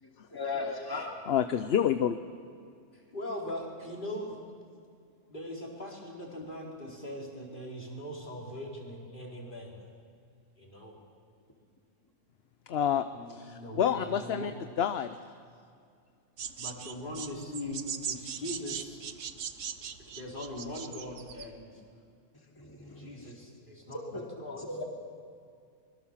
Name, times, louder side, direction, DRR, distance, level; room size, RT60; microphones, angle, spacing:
voice 1, 0.0-1.1 22.6-23.3 24.1-24.2 24.7-24.8, left 3 dB, 15° left, 0 dB, 2.7 m, -37 dB
voice 2, 1.3-2.2 12.7-14.5 14.8-15.2, left 9 dB, 60° left, 10 dB, 1.0 m, -28 dB
voice 3, 2.9-4.5 5.3-9.8 10.6-11.0 13.1-14.5 16.6-19.0 20.0-21.8 23.0-24.8, left 1 dB, 40° left, -1 dB, 4.4 m, -41 dB
sound 1, 16.4-21.5, right 7 dB, 80° right, 1.4 m, -39 dB
24.5 x 22.0 x 7.4 m, 2.3 s
omnidirectional pair, 1.3 m